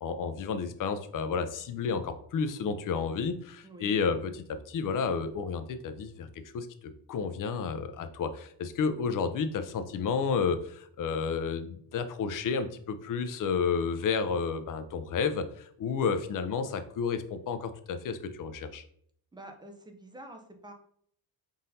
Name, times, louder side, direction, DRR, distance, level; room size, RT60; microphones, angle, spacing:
voice 1, 0.0-6.3 6.5-18.8, left 5 dB, 50° left, 10 dB, 0.5 m, -31 dB
voice 2, 19.3-20.7, right 1 dB, 10° right, 4 dB, 0.4 m, -47 dB
4.0 x 3.9 x 2.6 m, 0.63 s
wide cardioid pair, 155°, 43 cm